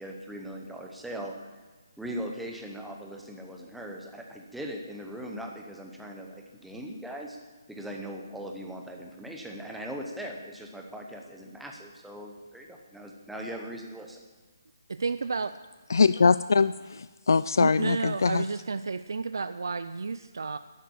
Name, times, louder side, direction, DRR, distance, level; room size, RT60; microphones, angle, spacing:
voice 1, 0.0-1.5 2.0-7.4 7.7-14.2, equal, ahead, 0 dB, 0.8 m, -40 dB
voice 2, 14.9-15.5 17.6-20.6, right 4 dB, 65° right, 12 dB, 0.5 m, -31 dB
voice 3, 15.9-18.4, left 4 dB, 60° left, 15 dB, 0.3 m, -23 dB
11.5 x 10.5 x 8.4 m, 1.4 s
hypercardioid pair, 175°, 2 cm